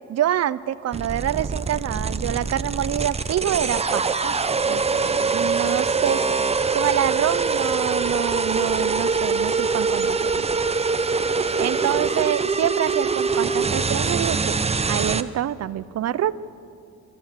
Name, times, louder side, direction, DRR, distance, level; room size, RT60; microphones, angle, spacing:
voice 1, 0.1-4.4 4.7-6.2 6.7-10.5 11.6-14.6 14.9-16.3, right 11 dB, 60° right, 17 dB, 0.7 m, -26 dB
sound 1, 0.9-15.2, right 4 dB, 20° right, 0.7 m, -23 dB
26.5 x 13.0 x 7.6 m, 2.6 s
cardioid pair, 90°, 30 cm